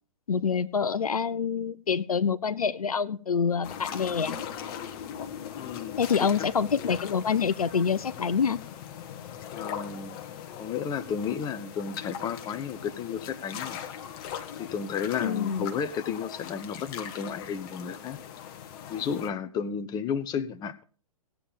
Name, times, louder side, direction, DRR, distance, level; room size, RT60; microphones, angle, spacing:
voice 1, 0.3-4.4 6.0-8.6 15.2-15.7, left 6 dB, 75° left, 14 dB, 0.7 m, -26 dB
sound 1, 3.6-19.3, left 9 dB, 35° left, 1.4 m, -40 dB
voice 2, 5.6-6.3 9.5-10.2 10.6-13.8 14.6-18.2 18.9-20.8, left 7 dB, 20° left, 11 dB, 1.0 m, -33 dB
17.0 x 8.9 x 5.3 m, 0.39 s
figure-of-eight pair, 110°, 19 cm